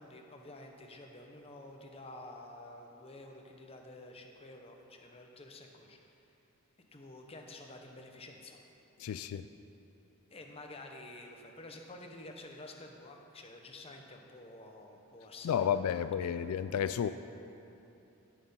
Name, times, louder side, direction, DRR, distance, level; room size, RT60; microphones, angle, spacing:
voice 1, 0.0-6.2 6.9-8.6 10.3-16.0 16.3-16.4, left 2 dB, 25° left, 2 dB, 0.9 m, -50 dB
voice 2, 9.0-9.5 15.4-17.1, left 8 dB, 85° left, 12 dB, 0.3 m, -31 dB
13.0 x 6.7 x 5.6 m, 2.8 s
head